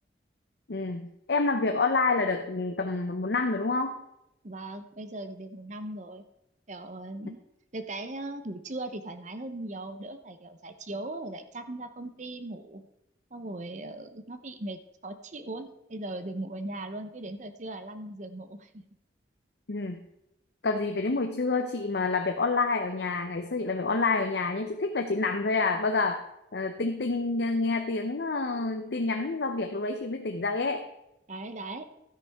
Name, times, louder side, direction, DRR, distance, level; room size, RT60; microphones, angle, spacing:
voice 1, 0.7-4.0 19.7-20.0 20.6-26.2 26.5-30.9, left 3 dB, 65° left, 6 dB, 0.7 m, -28 dB
voice 2, 4.4-6.2 6.7-7.4 7.7-12.8 13.3-18.8 31.3-31.9, right 2 dB, 40° right, 9 dB, 0.8 m, -39 dB
12.5 x 9.9 x 3.6 m, 0.86 s
head